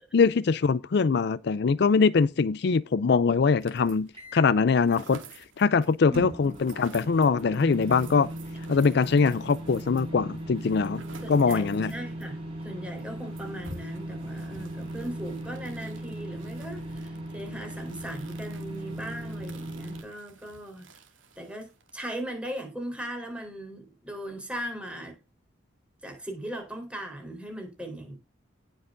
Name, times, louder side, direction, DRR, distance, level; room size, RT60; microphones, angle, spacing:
voice 1, 0.1-5.2 5.6-8.3 8.7-11.0 11.3-11.9, left 5 dB, 60° left, 0.4 m, -23 dB
sound 1, 3.6-4.2 4.5-12.3 12.6-12.7 13.0-22.0, right 3 dB, 90° right, 2.4 m, -50 dB
sound 2, 4.1-4.6 6.1-20.0, right 1 dB, 30° right, 5.9 m, -38 dB
voice 2, 11.2-21.0 21.4-25.2 26.0-28.2, right 1 dB, 5° right, 4.1 m, -38 dB
18.5 x 6.5 x 2.6 m
head